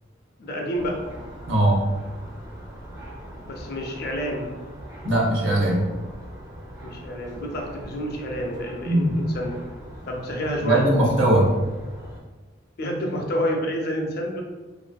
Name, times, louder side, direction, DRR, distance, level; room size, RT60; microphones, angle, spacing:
voice 1, 0.4-1.0 3.3-4.5 6.8-9.6 10.1-10.9 12.8-14.4, equal, 55° left, 1 dB, 0.5 m, -29 dB
sound 1, 0.7-12.2, equal, 15° right, 0.5 m, -41 dB
voice 2, 1.5-1.8 5.0-5.9 8.8-9.1 10.6-11.5, right 1 dB, 85° right, -2 dB, 0.7 m, -20 dB
2.7 x 2.5 x 2.2 m, 1.2 s
head